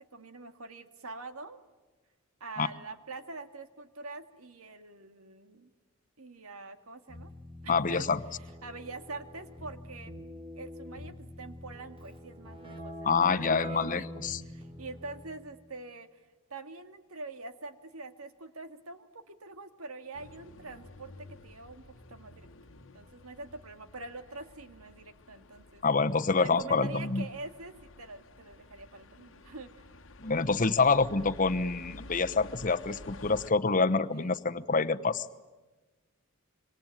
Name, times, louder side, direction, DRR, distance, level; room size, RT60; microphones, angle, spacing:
voice 1, 0.0-1.6 2.4-5.7 6.2-7.3 7.6-8.0 8.6-10.1 10.5-16.1 16.5-21.8 22.1-22.5 22.9-25.8 26.4-29.7 34.1-34.3, right 3 dB, 85° right, 8 dB, 2.0 m, -45 dB
Keyboard (musical), 7.1-15.5, equal, 25° right, 5.2 m, -44 dB
voice 2, 7.7-8.2 13.0-14.4 25.8-27.3 30.2-35.3, left 4 dB, 35° left, 10 dB, 1.0 m, -27 dB
sound 1, 20.1-33.5, left 2 dB, 60° left, 1.3 m, -51 dB
26.5 x 25.0 x 9.2 m, 1.2 s
head